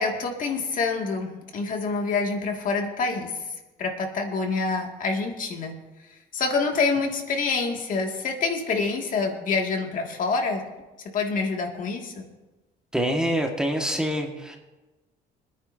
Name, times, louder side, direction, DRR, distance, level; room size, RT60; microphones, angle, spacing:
voice 1, 0.0-3.3 3.8-5.8 6.3-10.6 11.1-12.2, left 4 dB, 50° left, 2 dB, 2.2 m, -26 dB
voice 2, 12.9-14.6, equal, 5° right, 2 dB, 1.6 m, -25 dB
25.5 x 9.8 x 2.7 m, 1.1 s
cardioid pair, 110°, 17 cm